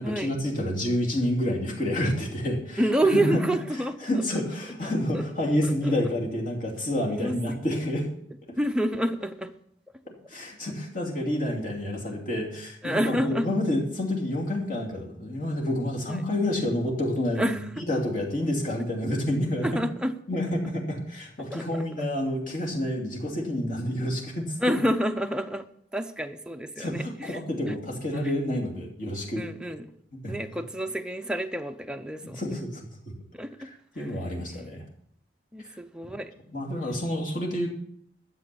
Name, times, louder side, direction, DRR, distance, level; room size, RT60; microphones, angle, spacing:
voice 1, 0.0-2.8 3.1-3.4 4.0-8.1 10.3-17.6 17.9-19.7 20.3-24.6 26.8-29.5 30.2-30.4 32.2-32.9 33.6-33.7 33.9-34.8 36.0-36.1 36.5-37.7, left 1 dB, 45° left, -2 dB, 2.8 m, -28 dB
voice 2, 2.8-3.9 5.1-5.2 5.8-5.9 7.1-7.6 8.6-9.5 12.8-13.5 16.1-16.2 17.4-17.6 19.6-20.1 21.5-21.8 24.6-25.7 25.9-27.4 27.7-27.8 28.2-28.3 29.4-29.9 30.3-32.4 33.3-33.5 34.0-34.1 34.5-34.7 35.5-36.3, right 1 dB, 5° right, 6 dB, 0.6 m, -28 dB
12.5 x 7.7 x 6.9 m, 0.68 s
head